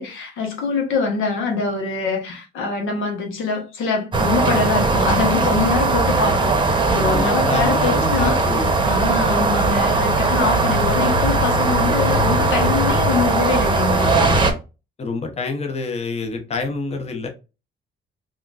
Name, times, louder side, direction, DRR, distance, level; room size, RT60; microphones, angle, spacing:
voice 1, 0.0-8.4 8.8-14.2, left 4 dB, 85° left, 1.0 m, -24 dB
sound 1, 4.1-14.5, right 2 dB, 25° right, 0.8 m, -19 dB
voice 2, 7.0-8.7 15.0-17.3, left 3 dB, 30° left, 0.7 m, -26 dB
3.6 x 2.4 x 2.4 m
cardioid pair, 90°, 20 cm